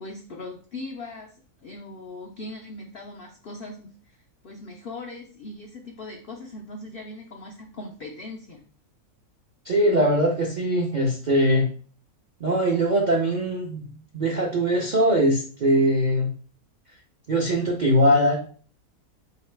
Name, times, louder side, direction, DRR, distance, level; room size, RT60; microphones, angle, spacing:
voice 1, 0.0-4.2 4.4-8.6, left 2 dB, 75° left, 1 dB, 0.5 m, -39 dB
voice 2, 9.6-11.7 12.4-13.8 14.1-16.3 17.3-18.3, equal, 55° right, -2 dB, 0.5 m, -21 dB
3.8 x 2.9 x 3.2 m, 0.43 s
omnidirectional pair, 1.6 m